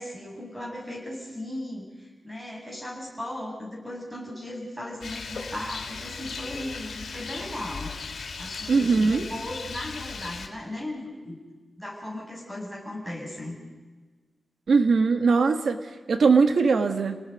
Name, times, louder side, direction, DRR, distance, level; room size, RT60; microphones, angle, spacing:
voice 1, 0.0-7.9 8.4-11.4 11.8-13.6, left 1 dB, 5° right, -2 dB, 6.8 m, -37 dB
Rain, 5.0-10.5, left 5 dB, 85° left, 2.7 m, -37 dB
voice 2, 8.7-9.2 14.7-17.2, right 4 dB, 70° right, 7 dB, 1.6 m, -21 dB
29.5 x 19.0 x 5.3 m, 1.3 s
wide cardioid pair, 125°, 0 cm